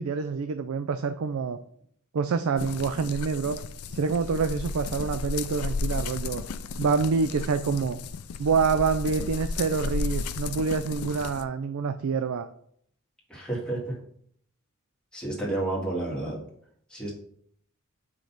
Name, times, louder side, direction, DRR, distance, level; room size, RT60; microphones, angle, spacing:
voice 1, 0.0-1.6 2.1-3.6 3.9-6.4 6.8-8.0 8.4-12.5, right 5 dB, 70° right, 9 dB, 0.4 m, -27 dB
sound 1, 2.6-11.4, left 4 dB, 90° left, 0.5 m, -34 dB
voice 2, 13.3-13.9 15.1-16.4 16.9-17.1, right 2 dB, 5° left, -5 dB, 1.9 m, -30 dB
5.2 x 3.9 x 5.8 m, 0.65 s
head